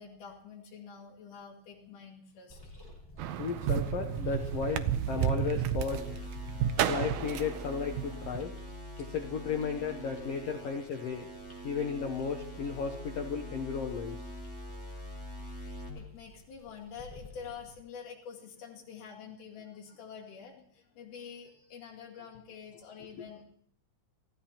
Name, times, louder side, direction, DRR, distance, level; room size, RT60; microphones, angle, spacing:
voice 1, 0.0-2.6 15.4-23.4, left 6 dB, 80° left, -3 dB, 3.7 m, -47 dB
sound 1, 2.5-17.7, equal, 5° left, 5.7 m, -55 dB
sound 2, 3.2-8.4, right 10 dB, 75° right, 2.1 m, -32 dB
voice 2, 3.4-6.0 6.9-8.6 9.0-11.3 11.6-14.3, left 6 dB, 65° left, 3 dB, 1.8 m, -34 dB
sound 3, 5.9-15.9, equal, 10° right, 3.7 m, -44 dB
29.0 x 15.5 x 2.9 m, 0.70 s
omnidirectional pair, 3.6 m